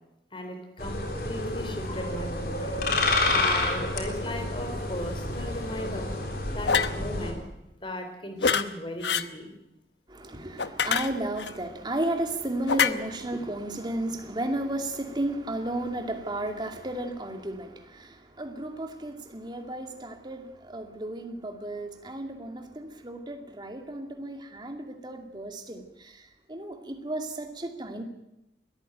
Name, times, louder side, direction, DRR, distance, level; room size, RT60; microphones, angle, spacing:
voice 1, 0.3-2.9 3.3-6.1 6.5-7.4 7.8-9.5, left 1 dB, 30° left, 6 dB, 3.7 m, -37 dB
sound 1, 0.8-7.3, left 2 dB, 55° left, 3.8 m, -29 dB
sound 2, 6.7-7.0 8.4-8.6 9.0-9.3 10.6-11.5 12.7-12.9, left 6 dB, 85° left, 1.0 m, -25 dB
voice 2, 10.1-28.0, right 1 dB, 25° right, 5 dB, 2.4 m, -33 dB
21.0 x 14.0 x 9.0 m, 0.90 s
head